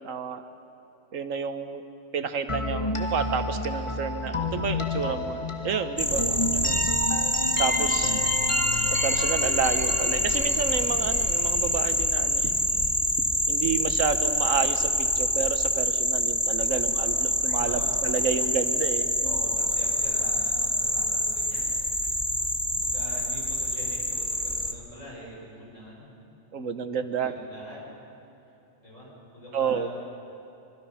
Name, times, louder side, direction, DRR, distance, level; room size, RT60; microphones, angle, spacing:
voice 1, 0.0-0.5 1.1-1.8 2.1-6.8 7.6-8.2 9.0-12.5 13.5-19.4 26.5-27.4 29.5-29.9, right 6 dB, 90° right, 9 dB, 1.5 m, -30 dB
sound 1, 2.5-12.2, left 2 dB, 25° left, 1.4 m, -31 dB
sound 2, 6.0-24.7, equal, 5° left, 1.0 m, -26 dB
voice 2, 16.7-17.1 17.5-18.0 19.2-21.7 22.8-26.1 27.1-27.9 28.8-30.0, equal, 80° left, -5 dB, 7.4 m, -43 dB
25.0 x 24.0 x 5.7 m, 2.9 s
omnidirectional pair, 1.3 m